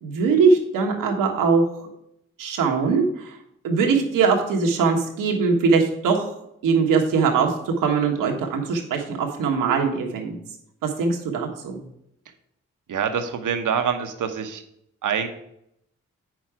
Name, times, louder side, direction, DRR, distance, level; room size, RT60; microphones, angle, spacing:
voice 1, 0.0-1.9 2.4-3.4 3.6-6.3 6.6-10.4 10.8-11.8, right 5 dB, 90° right, 2 dB, 1.4 m, -21 dB
voice 2, 12.9-14.6 15.0-15.3, right 7 dB, 70° right, 7 dB, 1.1 m, -25 dB
8.1 x 6.1 x 4.9 m, 0.76 s
supercardioid pair, 40°, 32 cm